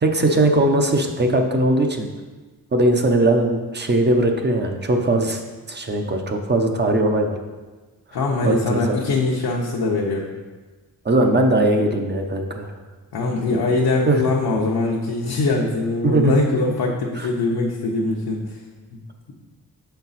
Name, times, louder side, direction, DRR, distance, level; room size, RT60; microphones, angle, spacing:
voice 1, 0.0-2.1 2.7-5.4 5.7-7.4 8.4-9.0 11.0-12.7 14.1-14.2 16.0-16.4 17.2-17.3, right 1 dB, 30° right, 4 dB, 0.7 m, -19 dB
voice 2, 8.1-10.3 13.1-18.6, left 3 dB, 75° left, -2 dB, 0.9 m, -22 dB
6.9 x 4.5 x 4.1 m, 1.3 s
wide cardioid pair, 110°, 37 cm